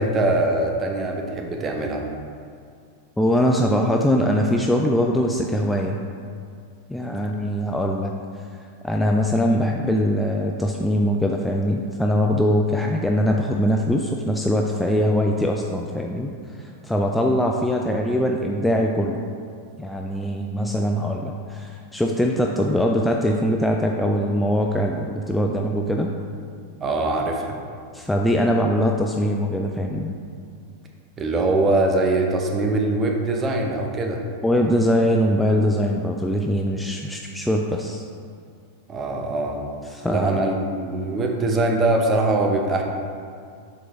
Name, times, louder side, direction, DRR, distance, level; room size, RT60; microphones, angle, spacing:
voice 1, 0.0-2.1 26.8-27.5 31.2-34.2 38.9-39.6 40.1-42.8, right 2 dB, 25° right, 2 dB, 0.8 m, -22 dB
voice 2, 3.2-6.0 6.9-8.1 8.8-16.3 16.6-19.2 19.8-26.1 27.9-30.1 34.4-38.0 39.9-40.4, equal, 5° left, 1 dB, 0.4 m, -22 dB
7.6 x 3.9 x 3.9 m, 2.2 s
figure-of-eight pair, 90°, 0 cm